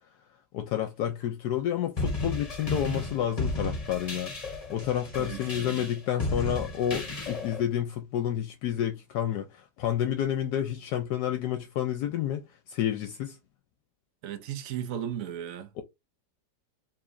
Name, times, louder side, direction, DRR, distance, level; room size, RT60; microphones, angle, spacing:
voice 1, 0.5-4.3 4.7-13.4 15.8-15.9, left 10 dB, 75° left, 1.2 m, -30 dB
sound 1, 2.0-7.6, left 2 dB, 20° left, 1.3 m, -33 dB
voice 2, 5.2-5.9 14.2-15.7, right 10 dB, 60° right, 1.1 m, -36 dB
4.7 x 3.5 x 2.6 m
omnidirectional pair, 1.9 m